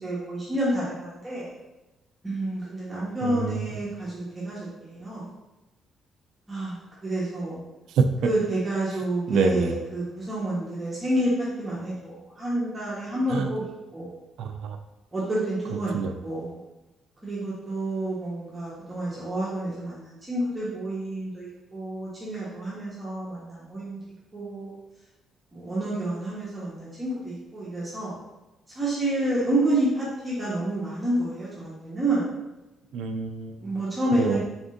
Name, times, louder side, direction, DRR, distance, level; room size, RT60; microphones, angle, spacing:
voice 1, 0.0-1.5 2.2-5.3 6.5-7.6 8.2-13.6 13.9-14.1 15.1-16.5 17.2-24.0 24.3-24.7 25.5-28.1 28.7-32.3 33.6-34.4, right 1 dB, 25° right, -8 dB, 1.3 m, -29 dB
voice 2, 3.2-3.8 7.9-8.0 9.3-9.7 13.3-13.5 14.4-14.8 15.9-16.1 32.9-33.6 34.2-34.4, right 5 dB, 80° right, 6 dB, 0.4 m, -26 dB
4.3 x 3.4 x 2.6 m, 1.0 s
cardioid pair, 90°, 0 cm